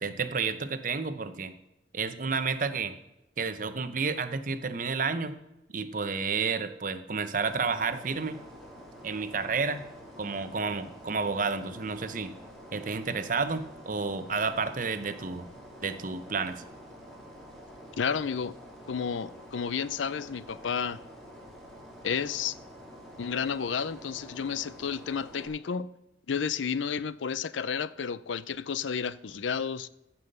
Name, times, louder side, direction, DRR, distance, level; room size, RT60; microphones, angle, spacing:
voice 1, 0.0-1.5 1.9-3.0 3.4-5.3 5.7-8.4 9.0-9.9 10.2-12.3 12.7-15.4 15.8-16.6, right 4 dB, 45° right, 0.8 m, -31 dB
sound 1, 7.4-25.5, equal, ahead, 2.8 m, -48 dB
voice 2, 18.0-18.6 18.9-21.0 22.0-22.5 23.2-25.9 26.3-29.9, left 6 dB, 90° left, 0.5 m, -31 dB
15.0 x 5.7 x 6.7 m
head